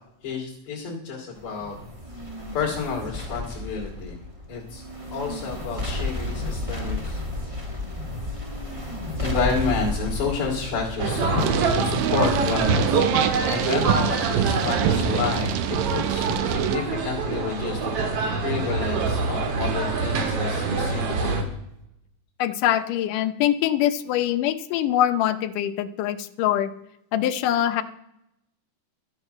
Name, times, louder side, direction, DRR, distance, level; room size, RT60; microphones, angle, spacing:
voice 1, 0.2-1.8 2.5-4.2 4.5-4.8 5.1-7.2 9.2-13.0 13.5-15.5 15.9-17.9 18.4-21.4, left 4 dB, 55° left, -4 dB, 3.8 m, -29 dB
sound 1, 1.4-12.6, left 2 dB, 20° right, 0.7 m, -33 dB
sound 2, 11.0-21.4, right 4 dB, 55° right, 2.2 m, -25 dB
sound 3, 11.4-16.8, right 9 dB, 80° right, 2.4 m, -26 dB
voice 2, 22.4-26.7 27.1-27.8, left 11 dB, 75° left, 10 dB, 2.2 m, -23 dB
13.0 x 9.0 x 6.6 m, 0.81 s
omnidirectional pair, 4.0 m